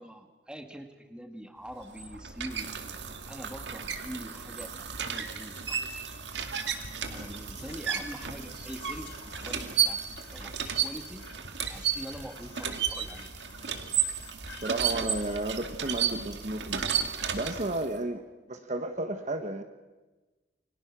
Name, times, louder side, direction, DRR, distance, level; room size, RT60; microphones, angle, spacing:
voice 1, 0.0-2.7 3.3-6.2 7.1-10.0 10.3-11.2 11.7-13.3, equal, 5° right, 5 dB, 2.1 m, -44 dB
sound 1, 1.7-18.0, right 8 dB, 70° right, 2.1 m, -33 dB
Whispering, 5.1-17.6, left 2 dB, 75° left, 3.4 m, -50 dB
voice 2, 14.5-16.8 17.3-19.6, right 2 dB, 40° right, 7 dB, 1.2 m, -33 dB
29.0 x 23.5 x 6.1 m, 1.2 s
head